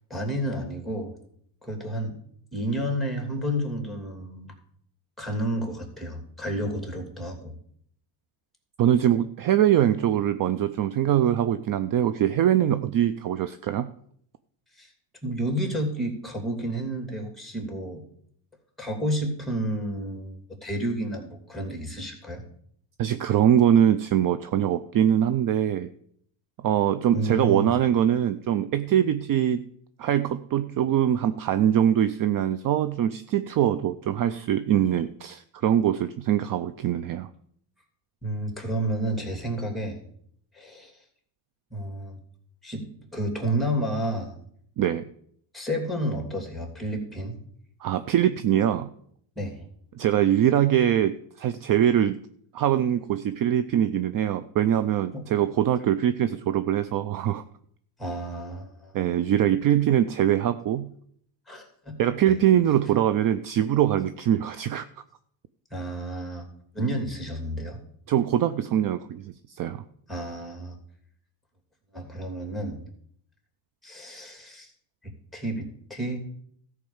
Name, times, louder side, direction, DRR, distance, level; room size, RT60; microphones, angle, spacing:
voice 1, 0.1-1.1 1.6-2.2 2.5-4.5 5.2-7.5 14.8-14.9 15.2-18.0 18.8-22.4 27.1-27.8 38.2-40.0 40.5-40.9 41.7-42.2 42.6-42.9 43.1-44.3 45.5-47.3 49.4-49.6 55.1-55.3 58.0-59.0 61.5-62.0 62.3-62.4 65.7-66.4 66.7-67.8 70.1-70.8 71.9-72.8 73.8-74.7 75.0-76.2, right 1 dB, ahead, 3 dB, 2.7 m, -31 dB
voice 2, 8.8-13.9 23.0-25.9 26.6-29.6 30.0-37.3 44.8-45.1 47.8-48.9 50.0-52.2 52.5-57.4 58.9-60.9 62.0-64.8 68.1-69.8, right 10 dB, 45° right, 12 dB, 0.5 m, -23 dB
13.5 x 4.8 x 7.1 m, 0.66 s
cardioid pair, 110°, 49 cm